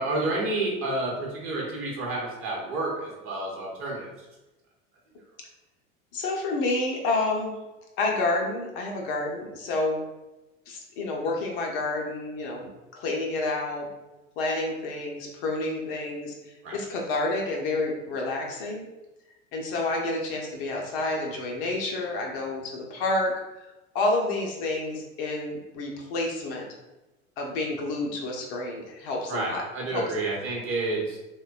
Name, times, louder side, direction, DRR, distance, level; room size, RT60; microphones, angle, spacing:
voice 1, 0.0-4.1 16.6-16.8 29.3-31.2, right 2 dB, 35° right, -3 dB, 0.9 m, -29 dB
voice 2, 6.1-7.5 8.0-10.0 10.7-13.9 14.4-18.8 19.5-23.3 23.9-26.7 27.4-29.6 29.9-30.1, left 2 dB, 45° left, 0 dB, 0.6 m, -29 dB
3.2 x 2.1 x 2.3 m, 1.0 s
figure-of-eight pair, 80°, 39 cm